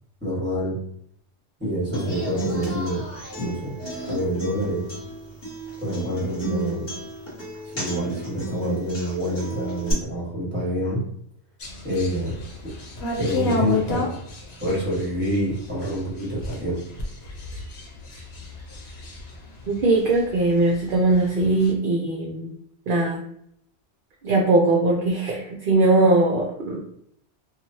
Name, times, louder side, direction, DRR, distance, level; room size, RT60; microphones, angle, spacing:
voice 1, 0.2-0.8 1.6-3.0 3.4-3.7 4.0-4.9 5.8-6.8 7.6-11.0 11.8-12.4 13.2-14.1 14.6-16.8, equal, 10° right, -6 dB, 1.2 m, -27 dB
Human voice / Acoustic guitar, 1.9-9.9, right 1 dB, 45° left, 1.4 m, -34 dB
sound 1, 11.6-20.4 20.7-21.7, left 3 dB, 70° left, 1.0 m, -31 dB
voice 2, 19.7-22.5 22.9-23.2 24.2-26.8, right 2 dB, 60° right, -2 dB, 0.6 m, -20 dB
3.0 x 2.4 x 2.6 m, 0.70 s
omnidirectional pair, 1.2 m